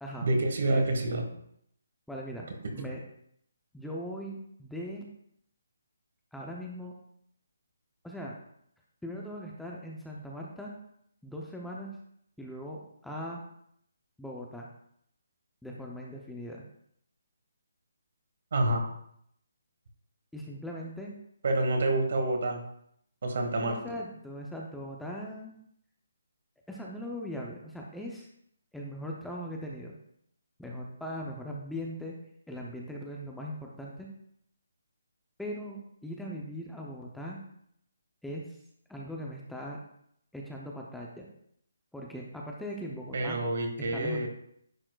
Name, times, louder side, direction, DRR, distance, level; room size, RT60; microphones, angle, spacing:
voice 1, 0.2-1.2 2.8-2.9 18.5-18.9 21.4-22.6 23.2-23.8 43.1-44.3, right 2 dB, 60° right, 3 dB, 1.3 m, -27 dB
voice 2, 2.1-3.0 3.7-5.1 6.3-6.9 8.0-8.4 9.0-10.7 11.2-12.0 12.4-13.4 14.2-14.7 15.6-16.6 20.3-21.1 23.6-25.6 26.7-28.3 28.7-30.0 30.6-32.2 32.5-34.1 35.4-37.4 38.2-38.6 38.9-39.8 40.3-41.3 41.9-43.4 43.9-44.3, equal, ahead, -3 dB, 0.5 m, -40 dB
9.8 x 4.4 x 2.3 m, 0.71 s
hypercardioid pair, 155°, 0 cm